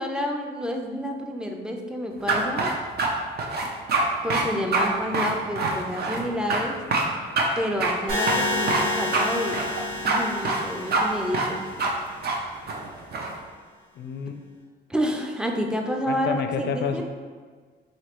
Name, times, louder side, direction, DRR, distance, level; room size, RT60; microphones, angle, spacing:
voice 1, 0.0-2.7 4.2-6.8 7.6-9.6 10.0-11.7 14.9-17.0, equal, 5° right, 2 dB, 0.4 m, -29 dB
sound 1, 2.3-3.1 3.4-4.0 4.3-4.5 4.7-4.9 5.1-6.2 6.5-6.6 6.9-7.1 7.4-7.5 7.8-7.9 8.3-8.8 9.1-9.3 9.5-10.2 10.4-10.6 10.9-11.0 11.3-11.5 11.8-11.9 12.2-12.4 12.7-13.3, right 3 dB, 55° right, 0.6 m, -24 dB
sound 2, 8.1-12.1, left 2 dB, 80° right, 1.2 m, -29 dB
voice 2, 14.0-14.3 16.1-17.0, left 6 dB, 55° left, 7 dB, 0.4 m, -29 dB
4.0 x 3.1 x 2.9 m, 1.5 s
cardioid pair, 90°, 20 cm